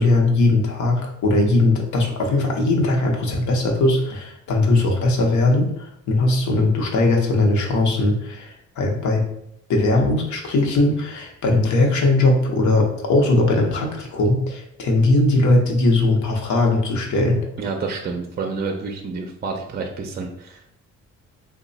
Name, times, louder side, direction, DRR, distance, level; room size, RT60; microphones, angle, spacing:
voice 1, 0.0-9.2 9.7-17.4, left 2 dB, 70° left, 1 dB, 0.9 m, -19 dB
voice 2, 17.6-20.7, right 4 dB, 30° right, 3 dB, 0.5 m, -29 dB
3.0 x 2.2 x 3.9 m, 0.75 s
cardioid pair, 90°, 30 cm